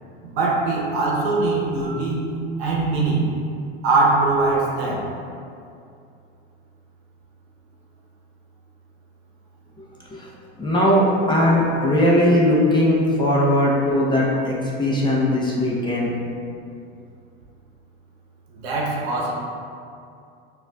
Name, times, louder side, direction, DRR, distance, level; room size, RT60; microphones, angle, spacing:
voice 1, 0.2-2.3 2.6-3.3 3.8-5.1 18.5-19.3, right 3 dB, 75° right, -3 dB, 0.9 m, -21 dB
voice 2, 10.6-16.1, left 1 dB, 15° left, -5 dB, 0.6 m, -19 dB
5.2 x 2.4 x 2.3 m, 2.5 s
supercardioid pair, 100°, 31 cm